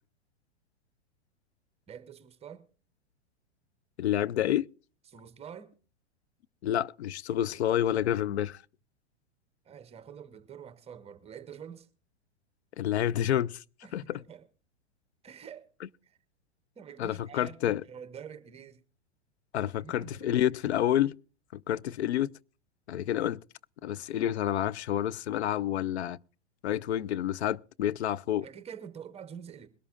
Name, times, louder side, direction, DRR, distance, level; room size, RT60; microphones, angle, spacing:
voice 1, 1.9-2.7 5.1-5.7 9.6-11.9 13.8-14.5 15.2-15.7 16.0-16.2 16.8-18.8 19.6-20.3 28.4-29.7, right 8 dB, 15° right, 1.0 m, -46 dB
voice 2, 4.0-4.7 6.6-8.6 12.8-13.6 13.9-14.2 17.0-17.8 19.5-21.1 21.5-22.3 22.9-23.4 23.8-26.2 26.6-28.4, left 11 dB, 70° left, 0.5 m, -29 dB
22.0 x 12.5 x 2.5 m
hypercardioid pair, 110°, 34 cm